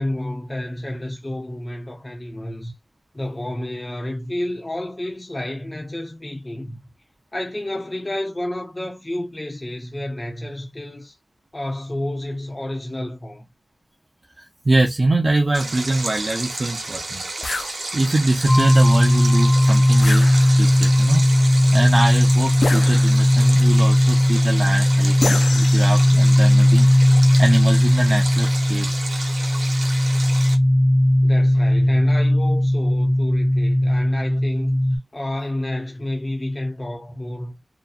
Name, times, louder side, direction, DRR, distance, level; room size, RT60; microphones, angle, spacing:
voice 1, 0.0-2.7 3.1-6.8 7.3-11.1 11.5-13.5 31.2-34.8 35.1-37.5, left 1 dB, 25° left, 0.9 m, -30 dB
voice 2, 14.4-17.3 17.9-21.2 21.7-26.9 27.4-29.1, right 2 dB, 40° right, 0.5 m, -23 dB
Stream, 15.5-30.6, right 2 dB, 85° right, 0.8 m, -31 dB
sound 1, 17.4-17.7 20.0-20.8 22.6-23.4 25.2-26.3, left 3 dB, 70° left, 0.3 m, -28 dB
sound 2, 18.5-35.0, left 1 dB, 5° left, 0.5 m, -17 dB
2.8 x 2.2 x 2.4 m
wide cardioid pair, 90°, 0 cm